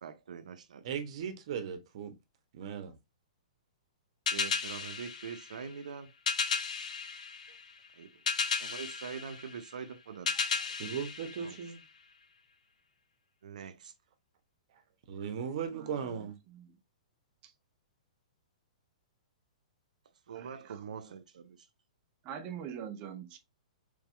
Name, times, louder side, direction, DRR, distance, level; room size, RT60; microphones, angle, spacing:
voice 1, 0.0-0.9 4.3-6.1 7.9-8.2 8.6-10.7 11.4-11.6 13.4-13.9 20.3-21.7, right 6 dB, 85° right, 0.7 m, -44 dB
voice 2, 0.8-2.1 2.5-3.0 10.8-11.8 15.1-16.3, right 7 dB, 50° right, 1.0 m, -37 dB
sound 1, 4.3-12.1, left 5 dB, 75° left, 0.8 m, -35 dB
voice 3, 15.7-16.7 17.4-17.5 20.3-20.8 22.2-23.4, right 8 dB, 30° right, 0.7 m, -44 dB
3.5 x 3.5 x 3.3 m
hypercardioid pair, 155°, 4 cm